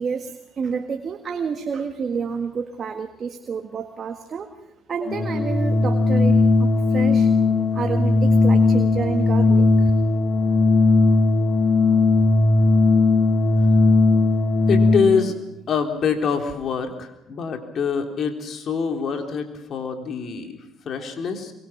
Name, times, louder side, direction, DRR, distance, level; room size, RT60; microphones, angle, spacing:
voice 1, 0.0-4.5 4.9-9.9, right 6 dB, 45° right, 6 dB, 1.8 m, -29 dB
Organ, 5.0-15.3, left 3 dB, 40° left, 3.3 m, -18 dB
voice 2, 14.7-15.3 15.7-21.5, left 5 dB, 55° left, 4 dB, 3.7 m, -25 dB
24.5 x 23.5 x 6.1 m, 0.85 s
hypercardioid pair, 60°, 0 cm